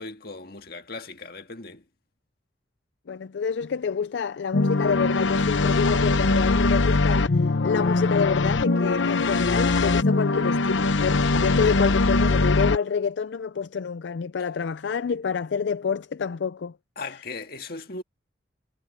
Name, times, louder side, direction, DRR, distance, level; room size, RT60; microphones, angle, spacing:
voice 1, 0.0-1.8 17.0-18.0, left 3 dB, 55° left, 1.9 m, -38 dB
voice 2, 3.1-16.7, left 6 dB, 70° left, 0.4 m, -27 dB
sound 1, 4.5-12.8, left 3 dB, 85° left, 0.8 m, -22 dB
head